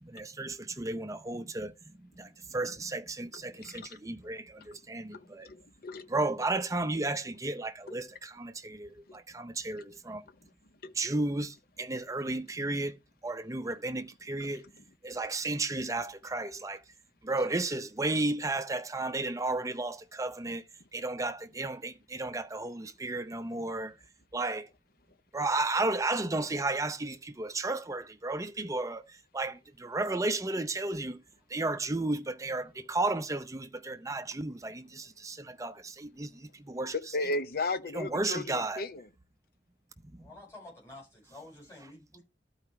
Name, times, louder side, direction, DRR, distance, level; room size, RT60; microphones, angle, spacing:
voice 1, 0.0-5.5 6.1-10.2 11.0-14.7 15.0-16.8 17.2-20.6 20.9-24.0 24.3-24.7 25.3-31.2 31.5-37.0 37.9-38.9 40.2-40.3, right 2 dB, 20° right, 0.6 m, -33 dB
voice 2, 3.6-4.0 4.6-4.7 5.1-6.1 9.1-9.2 10.4-10.5 10.8-10.9 14.4-14.5 14.8-14.9 36.9-39.1, left 2 dB, 55° left, 0.7 m, -35 dB
voice 3, 40.2-42.2, left 2 dB, 15° left, 5.6 m, -50 dB
12.5 x 4.8 x 3.3 m
head